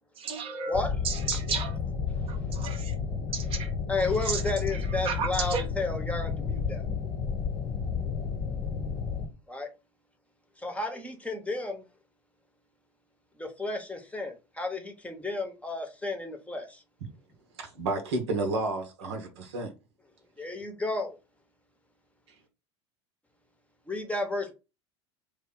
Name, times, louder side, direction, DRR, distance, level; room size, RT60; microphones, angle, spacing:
voice 1, 0.2-0.8 1.0-1.8 2.3-2.9 3.3-3.7 4.2-5.6, right 5 dB, 40° right, 0.8 m, -33 dB
sound 1, 0.7-9.3, left 6 dB, 40° left, 0.8 m, -31 dB
voice 2, 3.9-6.9 9.5-9.7 10.6-11.8 13.4-16.8 20.4-21.2 23.9-24.5, left 2 dB, 10° left, 0.8 m, -32 dB
voice 3, 17.6-19.7, right 2 dB, 70° right, 0.8 m, -31 dB
3.2 x 2.2 x 3.7 m
figure-of-eight pair, 70°, 15 cm